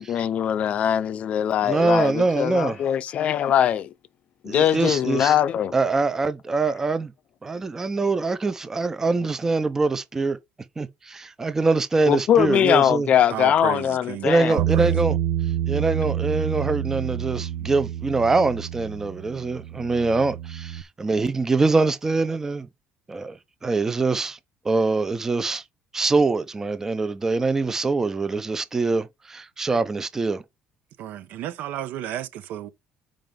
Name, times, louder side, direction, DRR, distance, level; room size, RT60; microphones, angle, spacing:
voice 1, 0.0-3.9 4.4-5.7 12.1-14.6, left 10 dB, 40° left, 0.6 m, -21 dB
voice 2, 1.6-2.8 4.4-5.4 5.7-7.1 7.4-10.4 10.8-13.1 14.2-15.2 15.7-22.7 23.1-23.4 23.6-24.4 24.6-25.6 25.9-30.4, right 3 dB, 15° right, 0.6 m, -24 dB
voice 3, 13.3-15.0 31.0-32.7, right 11 dB, 60° right, 1.0 m, -33 dB
Bass guitar, 14.6-20.8, right 11 dB, 85° right, 0.9 m, -28 dB
7.5 x 5.2 x 5.1 m
cardioid pair, 170°, 3 cm